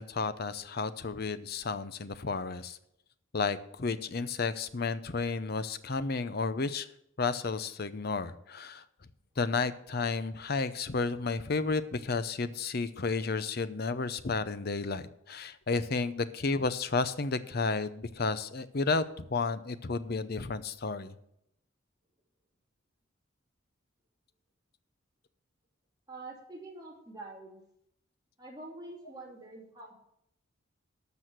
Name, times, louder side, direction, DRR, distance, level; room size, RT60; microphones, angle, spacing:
voice 1, 0.0-2.8 3.3-6.9 7.2-8.8 9.4-21.1, left 4 dB, 50° left, 13 dB, 0.7 m, -32 dB
voice 2, 26.1-27.6 28.4-29.9, right 2 dB, 20° right, -2 dB, 2.8 m, -46 dB
12.5 x 6.3 x 6.2 m, 0.78 s
head